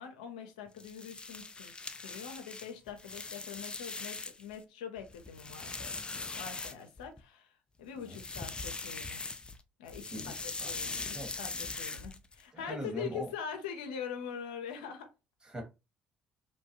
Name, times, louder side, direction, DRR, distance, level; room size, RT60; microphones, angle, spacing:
voice 1, 0.0-7.5 7.8-9.3 9.8-15.1, left 7 dB, 90° left, 0.6 m, -43 dB
sound 1, 0.7-4.6 5.0-7.2 8.0-9.6 9.9-12.4, left 3 dB, 25° left, 0.4 m, -41 dB
voice 2, 10.1-10.7 11.1-11.3 12.5-13.3 15.4-15.6, right 1 dB, 25° right, 1.6 m, -41 dB
3.0 x 2.2 x 2.9 m
hypercardioid pair, 65°, 4 cm